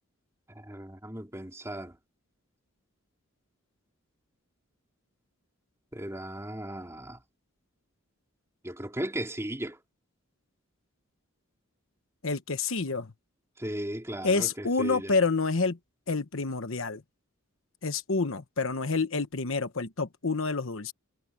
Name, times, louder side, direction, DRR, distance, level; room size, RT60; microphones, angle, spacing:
voice 1, 0.5-2.0 5.9-7.2 8.6-9.8 13.6-15.2, right 1 dB, 15° right, 3.0 m, -36 dB
voice 2, 12.2-13.1 14.2-15.8 16.1-17.0 17.8-20.9, left 4 dB, 65° left, 1.1 m, -28 dB
head